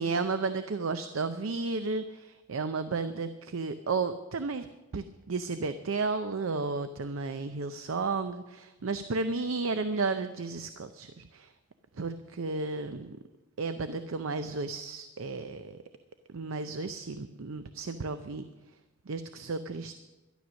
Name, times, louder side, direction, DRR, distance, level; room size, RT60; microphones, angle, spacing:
voice 1, 0.0-4.7 4.9-11.5 12.0-13.2 13.6-15.8 16.3-18.4 19.1-20.0, right 4 dB, 85° right, 10 dB, 0.6 m, -33 dB
12.5 x 11.5 x 6.3 m, 1.1 s
head